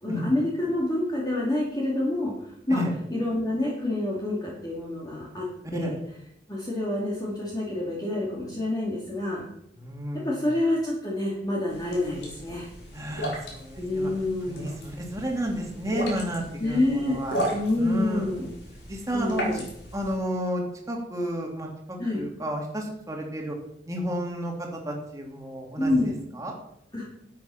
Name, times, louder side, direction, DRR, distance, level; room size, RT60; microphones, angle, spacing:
voice 1, 0.0-2.8 3.1-5.5 5.7-6.0 6.5-9.4 10.2-12.7 13.8-14.8 16.6-17.2 17.5-18.5 19.1-19.6 22.0-22.3 25.8-26.1 26.9-27.0, left 1 dB, 25° left, -5 dB, 2.7 m, -27 dB
voice 2, 9.8-10.4 12.9-14.1 14.5-17.4 17.7-18.3 18.9-19.4 19.9-23.6 23.9-26.5, equal, 20° right, 0 dB, 2.7 m, -32 dB
sound 1, 11.7-20.2, equal, 85° left, 5.0 m, -36 dB
12.5 x 8.5 x 5.8 m, 0.75 s
head